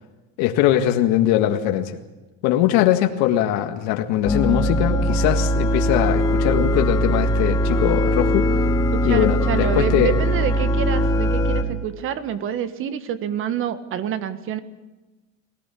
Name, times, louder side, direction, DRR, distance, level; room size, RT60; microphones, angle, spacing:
voice 1, 0.4-2.0 2.4-8.5 9.0-10.2, left 12 dB, 70° left, 5 dB, 1.8 m, -21 dB
sound 1, 4.2-11.6, equal, 10° left, 2.2 m, -20 dB
voice 2, 8.9-14.6, right 9 dB, 45° right, 12 dB, 1.6 m, -27 dB
21.0 x 18.0 x 8.5 m, 1.1 s
cardioid pair, 140°, 30 cm